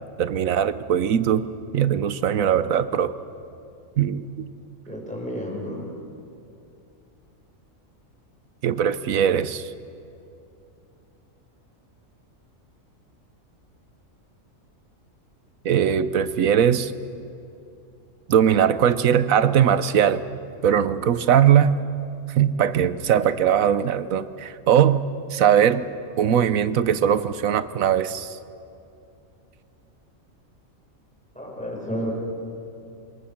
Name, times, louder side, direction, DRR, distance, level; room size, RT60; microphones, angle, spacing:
voice 1, 0.2-1.4 1.7-3.1 4.0-4.5 8.6-9.7 15.6-16.9 18.3-20.2 20.6-21.8 22.3-25.0 25.3-25.8 26.2-28.4, right 9 dB, 80° right, 14 dB, 1.3 m, -20 dB
voice 2, 4.9-5.9 31.3-32.1, equal, 5° left, -2 dB, 6.0 m, -31 dB
26.5 x 21.5 x 7.2 m, 2.7 s
omnidirectional pair, 1.4 m